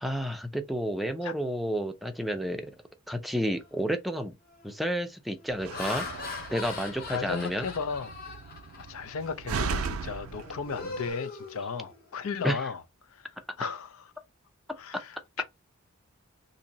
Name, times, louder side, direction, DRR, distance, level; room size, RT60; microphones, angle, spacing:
voice 1, 0.0-2.7 3.1-4.4 4.6-6.1 6.5-7.7 12.4-12.7 15.4-15.5, equal, ahead, 0.4 m, -31 dB
Laughter, 3.6-3.9 4.5-4.8 5.4-9.2 9.6-9.9 10.2-12.2, left 4 dB, 45° left, 1.1 m, -41 dB
Slam, 5.5-11.1, right 5 dB, 85° right, 0.4 m, -37 dB
voice 2, 7.1-8.2 8.8-12.8 13.1-13.3 13.6-13.9 14.8-15.4, left 5 dB, 85° left, 0.5 m, -35 dB
2.8 x 2.6 x 3.9 m
head